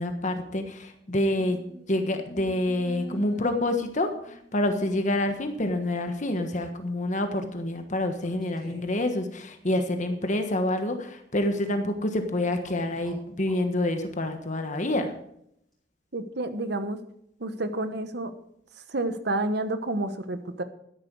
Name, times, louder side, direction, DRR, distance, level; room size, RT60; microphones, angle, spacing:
voice 1, 0.0-1.6 1.9-15.1, left 1 dB, 40° left, 6 dB, 1.3 m, -27 dB
sound 1, 1.2-5.2 6.1-6.3 8.2-9.0 12.6-13.7, right 1 dB, ahead, 6.3 m, -46 dB
voice 2, 16.1-17.0 17.4-18.3 18.9-20.6, right 2 dB, 60° right, 9 dB, 1.2 m, -29 dB
13.0 x 10.5 x 4.7 m, 0.74 s
head